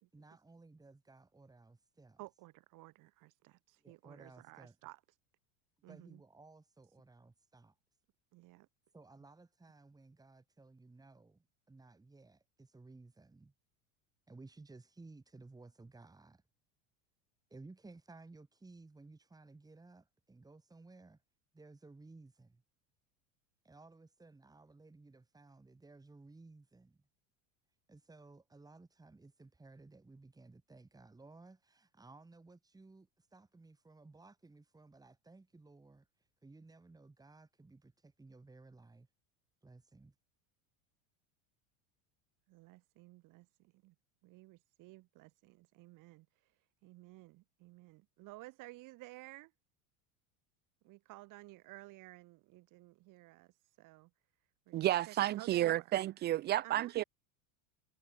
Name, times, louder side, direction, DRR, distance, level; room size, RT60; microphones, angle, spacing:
voice 1, 0.1-2.2 3.8-4.8 5.9-7.8 8.9-13.5 14.3-16.4 17.5-21.2 21.5-22.6 23.6-27.0 27.9-36.1 36.4-39.1 39.6-40.1, right 3 dB, 10° right, 4.7 m, -57 dB
voice 2, 2.2-5.0 5.8-6.2 8.3-8.7 42.5-43.9 44.2-49.5 50.8-54.1 54.7-55.9 56.6-56.9, right 20 dB, 50° right, 3.4 m, -55 dB
voice 3, 54.7-57.0, right 14 dB, 30° right, 0.4 m, -31 dB
supercardioid pair, 130°, 39 cm